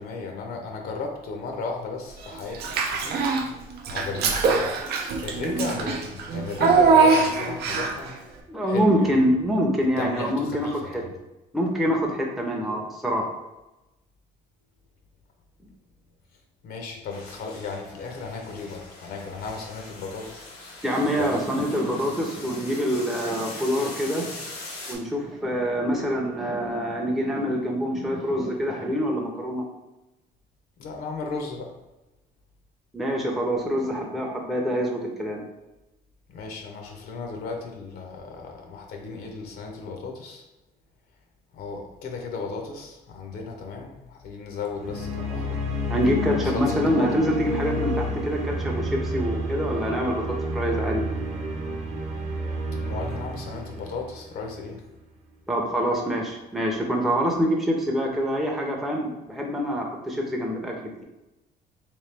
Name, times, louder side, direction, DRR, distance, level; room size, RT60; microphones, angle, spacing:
voice 1, 0.0-3.3 3.9-4.8 5.2-8.1 8.7-9.2 10.0-11.1 16.6-20.5 21.1-21.5 30.8-31.7 36.3-40.4 41.5-45.6 46.2-47.3 52.8-54.8, left 4 dB, 65° left, 2 dB, 0.7 m, -35 dB
Child speech kid speaking / Bathtub (filling or washing), 2.5-3.5 3.8-8.1, right 4 dB, 70° right, 0.6 m, -22 dB
voice 2, 8.5-11.0 11.5-13.3 20.8-24.3 24.9-29.6 32.9-35.4 45.9-51.0 55.5-61.0, equal, ahead, -1 dB, 0.6 m, -25 dB
sound 1, 17.1-25.0, left 2 dB, 85° left, 1.1 m, -41 dB
sound 2, 44.8-54.8, equal, 40° right, 0.9 m, -30 dB
3.2 x 3.0 x 3.3 m, 1.0 s
cardioid pair, 110°, 17 cm